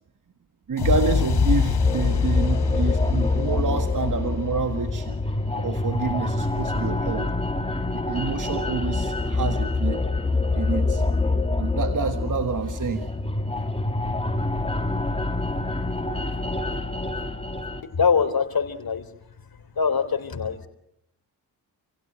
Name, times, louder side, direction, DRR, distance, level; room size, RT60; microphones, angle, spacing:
voice 1, 0.7-5.2 5.5-7.3 7.9-10.0 10.5-11.0 11.6-13.1, right 5 dB, 45° right, 7 dB, 1.9 m, -28 dB
sound 1, 0.8-8.7, left 6 dB, 70° left, 3.4 m, -28 dB
sound 2, 0.8-17.8, left 3 dB, 15° left, 3.0 m, -26 dB
voice 2, 18.0-19.0 19.8-20.7, left 6 dB, 55° left, 8 dB, 3.6 m, -23 dB
29.0 x 16.5 x 7.6 m, 0.78 s
cardioid pair, 60°, 42 cm